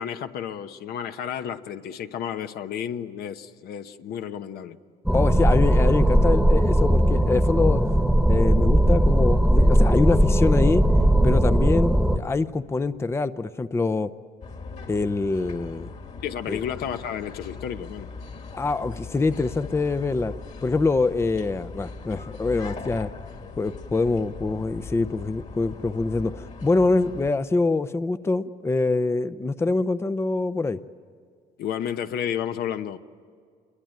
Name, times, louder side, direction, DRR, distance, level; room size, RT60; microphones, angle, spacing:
voice 1, 0.0-4.8 16.2-18.1 31.6-33.0, left 9 dB, 70° left, 9 dB, 1.0 m, -32 dB
voice 2, 5.1-7.8 8.3-10.9 11.2-14.1 14.9-15.9 16.5-16.6 18.6-20.3 20.6-23.1 23.6-30.8, left 3 dB, 15° left, 13 dB, 0.6 m, -24 dB
sound 1, 5.1-12.2, right 1 dB, ahead, 1.2 m, -19 dB
sound 2, 14.4-27.3, left 4 dB, 45° left, 2.2 m, -39 dB
27.5 x 21.5 x 9.1 m, 2.1 s
cardioid pair, 110°, 17 cm